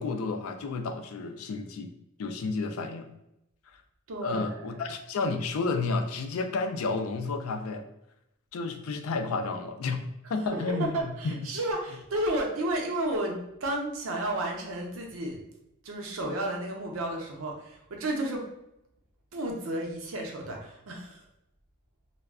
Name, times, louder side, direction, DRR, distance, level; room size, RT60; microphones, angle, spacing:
voice 1, 0.0-1.9 2.2-3.1 3.7-3.8 4.2-7.8 8.5-10.0 10.3-11.4, left 3 dB, 80° left, 7 dB, 0.4 m, -31 dB
voice 2, 4.1-4.6 10.7-15.4 15.8-18.5 19.3-21.2, right 1 dB, 75° right, 1 dB, 0.6 m, -32 dB
2.3 x 2.1 x 3.5 m, 0.84 s
head